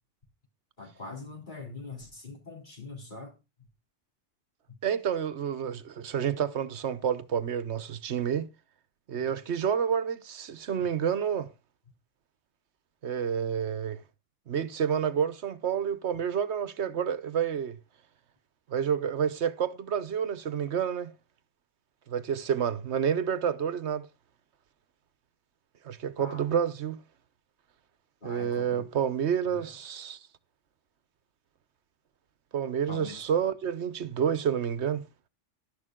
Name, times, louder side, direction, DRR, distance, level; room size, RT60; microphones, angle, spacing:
voice 1, 0.8-3.3 4.7-4.8 9.2-9.3 26.2-26.5 28.2-28.8 29.5-29.7 32.9-33.2, left 3 dB, 40° left, 3.6 m, -43 dB
voice 2, 4.8-8.5 9.1-11.5 13.0-14.0 14.5-17.8 18.7-21.1 22.1-24.1 25.8-27.0 28.2-30.3 32.5-35.0, right 8 dB, 65° right, 1.2 m, -29 dB
11.5 x 11.0 x 3.7 m
omnidirectional pair, 1.3 m